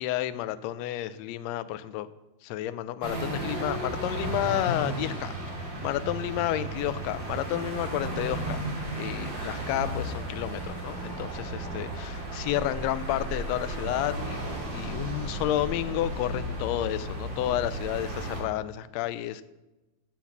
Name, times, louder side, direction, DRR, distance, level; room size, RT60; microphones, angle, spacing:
voice 1, 0.0-2.1 2.4-8.6 9.0-14.4 14.7-19.4, left 13 dB, 80° left, 1.6 m, -31 dB
sound 1, 3.0-18.4, right 1 dB, 40° right, 3.1 m, -34 dB
8.0 x 7.3 x 7.2 m
omnidirectional pair, 3.4 m